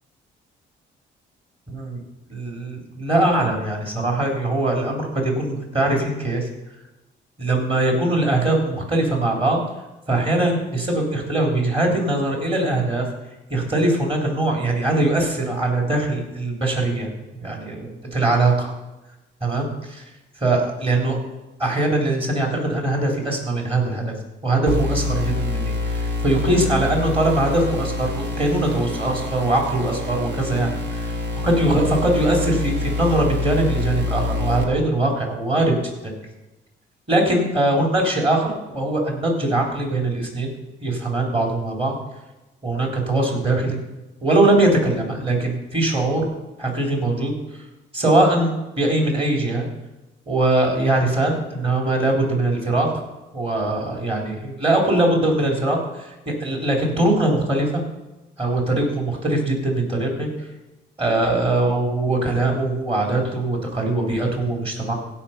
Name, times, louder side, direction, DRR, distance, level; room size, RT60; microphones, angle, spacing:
voice 1, 1.7-2.0 2.3-6.5 7.4-9.6 10.1-13.1 13.5-17.1 17.4-18.7 19.4-20.0 20.4-21.2 21.6-24.1 24.4-31.1 31.4-35.8 36.0-36.1 37.1-40.5 40.8-42.0 42.6-43.8 44.2-46.3 46.6-47.4 47.9-49.7 50.3-52.9 53.3-57.8 58.4-60.3 61.0-64.9, right 2 dB, 30° right, 0 dB, 3.7 m, -21 dB
sound 1, 24.7-34.6, left 3 dB, 60° right, 1.9 m, -26 dB
16.0 x 5.6 x 5.8 m, 1.0 s
cardioid pair, 90°, 20 cm